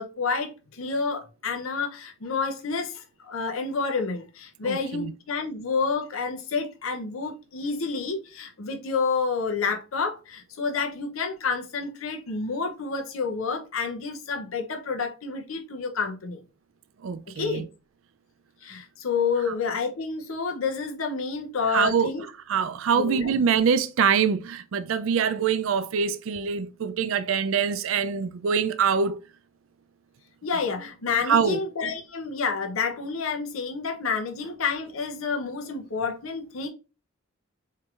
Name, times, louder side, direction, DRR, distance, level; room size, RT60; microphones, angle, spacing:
voice 1, 0.0-16.4 17.4-17.6 18.6-22.2 23.0-23.3 30.4-36.7, left 5 dB, 85° left, 0.8 m, -29 dB
voice 2, 4.6-5.1 17.0-17.6 21.7-22.1 22.5-29.2 31.3-31.6, right 6 dB, 75° right, 0.4 m, -24 dB
4.6 x 3.2 x 2.4 m
head